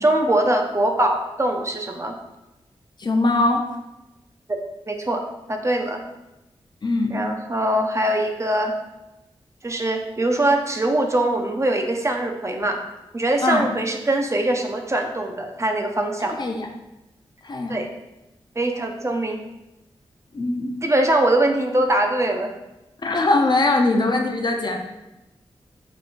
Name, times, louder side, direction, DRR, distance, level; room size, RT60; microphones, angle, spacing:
voice 1, 0.0-2.1 4.5-4.6 4.9-6.0 7.1-8.7 9.6-12.8 13.1-16.4 17.7-17.9 18.6-19.4 20.8-22.5, right 1 dB, 30° right, 3 dB, 0.5 m, -22 dB
voice 2, 3.0-3.7 6.8-7.2 13.4-13.7 16.3-16.7 17.4-17.8 20.3-20.7 23.0-24.8, left 2 dB, 45° left, 2 dB, 0.6 m, -21 dB
3.8 x 3.6 x 2.5 m, 0.96 s
cardioid pair, 60°, 10 cm